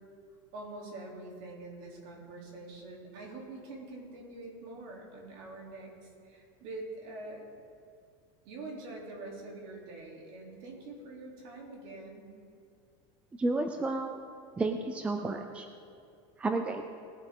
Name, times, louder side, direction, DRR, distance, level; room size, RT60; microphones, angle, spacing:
voice 1, 0.5-7.5 8.4-12.3, right 2 dB, 55° right, -2 dB, 3.3 m, -45 dB
voice 2, 13.4-14.2 14.6-15.7 16.4-16.8, right 2 dB, 10° right, 5 dB, 0.5 m, -31 dB
20.0 x 8.8 x 3.8 m, 2.4 s
supercardioid pair, 165°, 13 cm